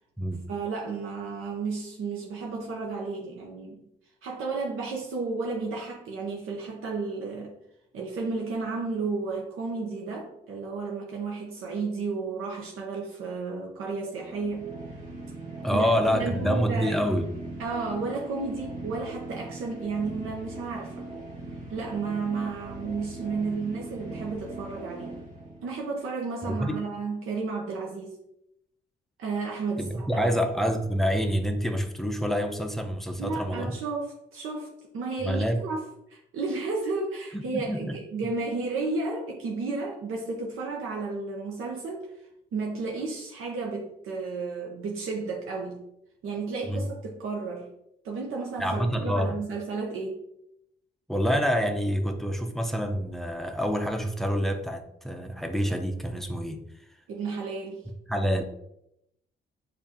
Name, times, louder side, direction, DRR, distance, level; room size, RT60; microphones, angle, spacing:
voice 1, 0.5-3.8 4.2-7.5 7.9-14.7 15.7-17.0 17.6-21.1 21.7-25.2 25.6-28.2 29.2-30.4 33.2-34.7 34.9-35.8 36.1-42.1 42.5-45.8 46.2-47.7 48.0-50.2 57.1-57.8, right 4 dB, 90° right, -2 dB, 0.8 m, -32 dB
sound 1, 14.1-25.8, right 2 dB, 35° right, 1.7 m, -40 dB
voice 2, 15.6-17.3 26.4-26.8 30.0-33.7 35.2-35.6 37.3-38.0 46.7-46.8 48.6-49.4 51.1-56.6 58.1-58.4, equal, ahead, 5 dB, 0.5 m, -27 dB
6.9 x 2.5 x 2.8 m, 0.80 s
cardioid pair, 120°, 21 cm